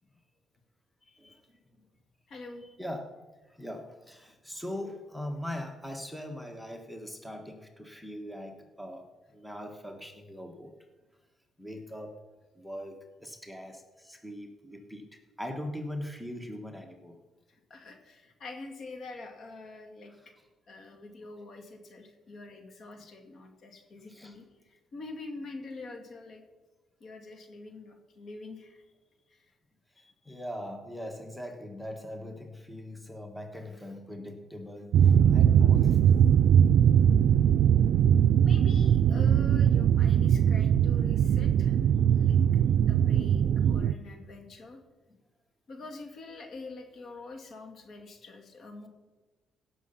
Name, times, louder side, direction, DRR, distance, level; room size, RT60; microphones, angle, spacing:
voice 1, 1.0-1.4 2.3-2.8 17.5-20.3 20.7-26.4 27.0-28.8 29.3-29.5 30.0-30.4 38.4-41.9 42.2-42.4 42.9-44.8 45.7-48.9, left 3 dB, 55° left, 4 dB, 2.1 m, -46 dB
voice 2, 2.8-3.1 3.5-9.1 9.3-10.7 11.6-12.2 12.6-17.2 24.1-24.3 30.2-36.2, left 1 dB, 5° left, 4 dB, 1.5 m, -41 dB
sound 1, 34.9-43.9, right 9 dB, 75° right, 0.4 m, -21 dB
16.5 x 6.5 x 5.7 m, 1.2 s
cardioid pair, 90°, 0 cm